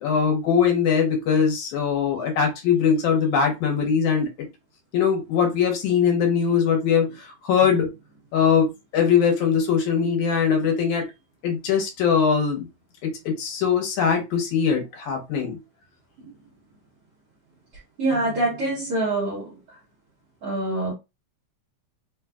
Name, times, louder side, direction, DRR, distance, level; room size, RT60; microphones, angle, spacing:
voice 1, 0.0-4.3 4.9-7.9 8.3-8.7 8.9-11.1 11.4-12.7 13.0-15.6, left 7 dB, 75° left, 2.3 m, -21 dB
voice 2, 18.0-19.6 20.4-20.9, right 2 dB, 65° right, 1.4 m, -25 dB
5.0 x 2.4 x 2.3 m
omnidirectional pair, 3.7 m